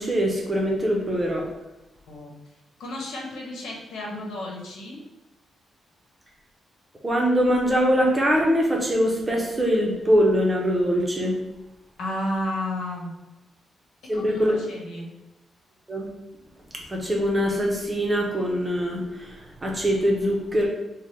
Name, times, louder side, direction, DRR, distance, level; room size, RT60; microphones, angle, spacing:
voice 1, 0.0-1.5 7.0-11.3 14.1-14.5 15.9-16.1 16.7-20.7, equal, 15° right, -1 dB, 0.6 m, -23 dB
voice 2, 2.8-5.0 12.0-13.1 14.1-15.1, left 1 dB, 90° left, -1 dB, 1.0 m, -32 dB
3.4 x 2.2 x 4.3 m, 1.0 s
wide cardioid pair, 170°, 0 cm